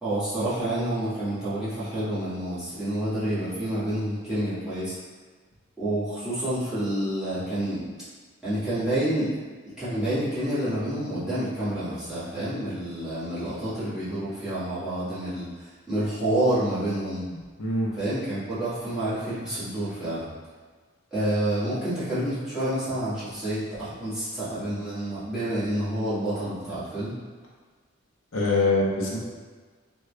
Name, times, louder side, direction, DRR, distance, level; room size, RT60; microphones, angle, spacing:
voice 1, 0.0-4.9 5.8-7.8 8.4-9.3 9.8-17.2 17.9-20.3 21.1-27.2, right 1 dB, 5° right, -14 dB, 1.4 m, -28 dB
voice 2, 17.3-17.9 28.3-29.2, left 2 dB, 75° left, -4 dB, 0.7 m, -24 dB
3.5 x 2.3 x 3.2 m, 1.5 s
head